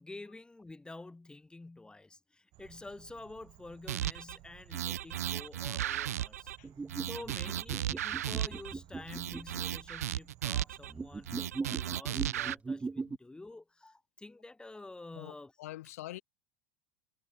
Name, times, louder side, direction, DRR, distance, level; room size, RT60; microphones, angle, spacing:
voice 1, 0.0-6.5 7.1-15.5, left 2 dB, 10° left, 1.7 m, -49 dB
sound 1, 2.5-11.5, right 20 dB, 55° right, 3.2 m, -58 dB
sound 2, 3.9-4.4 4.7-6.6 6.9-8.7 9.1-10.9 11.3-12.6, right 12 dB, 85° right, 1.0 m, -35 dB
sound 3, 6.6-9.6 10.9-13.2, right 4 dB, 15° right, 1.0 m, -39 dB
voice 2, 15.1-16.2, left 16 dB, 80° left, 1.3 m, -45 dB
hypercardioid pair, 95°, 8 cm